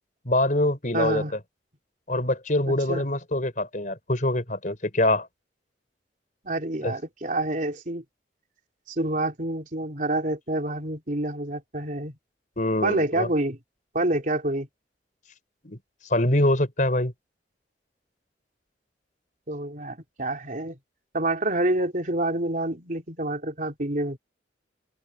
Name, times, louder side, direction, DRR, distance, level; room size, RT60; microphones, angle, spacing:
voice 1, 0.3-1.2 2.1-5.3 6.8-7.0 12.6-13.3 15.6-15.8 16.1-17.1, left 1 dB, 45° left, 5.2 m, -24 dB
voice 2, 0.9-1.4 2.7-3.1 6.4-8.0 8.9-12.1 12.8-13.6 13.9-14.7 19.5-20.8 21.1-24.2, right 1 dB, 45° right, 3.9 m, -27 dB
head